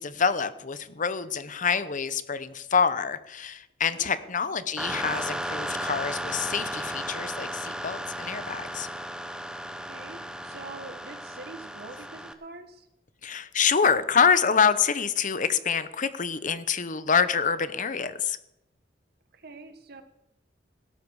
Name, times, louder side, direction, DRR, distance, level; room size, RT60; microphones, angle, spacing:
voice 1, 0.0-8.9 13.2-18.4, left 6 dB, 45° left, 13 dB, 0.9 m, -26 dB
voice 2, 3.9-4.2 9.8-12.9 19.3-20.0, right 3 dB, 60° right, 9 dB, 1.6 m, -45 dB
sound 1, 4.8-12.3, equal, 5° right, 1.0 m, -35 dB
17.0 x 12.5 x 4.8 m, 0.84 s
head